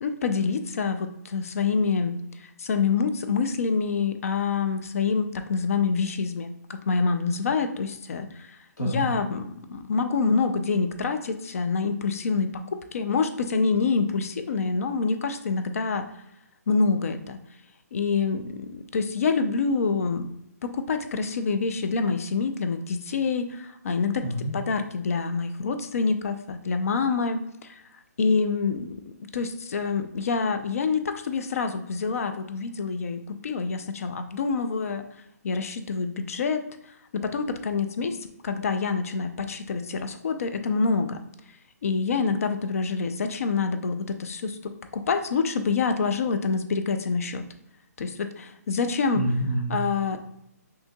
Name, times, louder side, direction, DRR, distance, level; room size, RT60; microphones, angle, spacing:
voice 1, 0.0-8.6 8.8-9.4 9.7-16.1 16.7-17.4 17.9-20.3 20.6-27.8 28.2-29.0 29.3-35.1 35.4-36.6 37.1-38.2 38.4-41.2 41.8-47.5 48.0-49.2 49.7-50.2, left 4 dB, 55° left, 9 dB, 0.5 m, -26 dB
voice 2, 24.2-24.5 49.1-49.8, right 1 dB, 75° left, -1 dB, 1.5 m, -27 dB
5.5 x 2.8 x 2.3 m, 0.80 s
hypercardioid pair, 155°, 9 cm